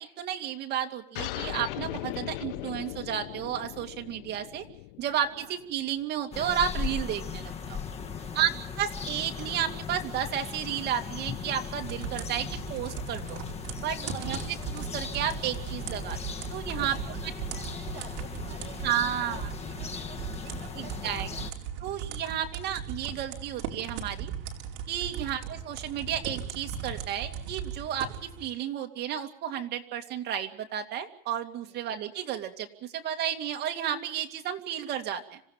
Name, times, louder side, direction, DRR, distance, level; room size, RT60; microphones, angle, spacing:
voice 1, 0.0-4.6 5.0-7.8 8.3-8.5 8.8-13.4 13.8-17.0 18.8-19.5 20.7-21.3 21.8-24.3 24.9-35.4, right 10 dB, 35° right, 4 dB, 2.5 m, -32 dB
sound 1, 1.1-6.2, left 16 dB, 65° left, 1.1 m, -38 dB
sound 2, 6.3-21.5, left 6 dB, 20° left, 1.6 m, -38 dB
voice 2, 8.0-8.7 14.0-14.5 16.8-21.5 25.1-25.3 31.6-31.8, right 11 dB, 75° right, 5 dB, 3.4 m, -50 dB
sound 3, 11.8-28.5, right 7 dB, 50° right, 4.7 m, -38 dB
26.5 x 16.5 x 7.4 m, 0.65 s
supercardioid pair, 160°, 30 cm